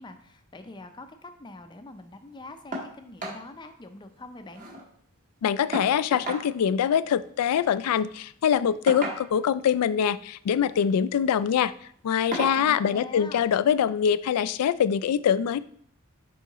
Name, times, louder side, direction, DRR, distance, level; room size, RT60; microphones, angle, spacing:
voice 1, 0.0-4.6 12.5-13.4, left 2 dB, 20° left, 7 dB, 0.5 m, -44 dB
sound 1, 2.7-2.9 3.2-3.4 3.8-3.9 4.2-4.9 5.7-6.5 7.7-7.9 8.9-9.5 10.6-10.9 11.3-11.5 12.3-12.6 13.9-14.0 14.5-14.6, right 1 dB, 35° right, 1.2 m, -34 dB
voice 2, 5.4-11.7 12.0-15.6, left 8 dB, 90° left, 17 dB, 0.3 m, -24 dB
6.9 x 4.9 x 3.0 m, 0.62 s
head